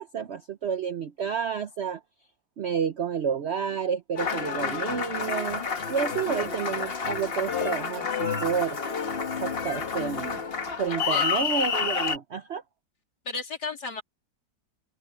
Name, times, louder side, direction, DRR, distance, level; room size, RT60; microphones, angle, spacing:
voice 1, 0.0-2.0 2.6-5.6 5.9-8.8 9.4-10.4 10.8-12.6, right 7 dB, 60° right, 0.7 m, -30 dB
Applause, 4.2-12.2, left 6 dB, 35° left, 1.3 m, -29 dB
voice 2, 10.9-11.5 13.3-14.0, left 4 dB, 70° left, 3.6 m, -34 dB
open air
omnidirectional pair, 1.9 m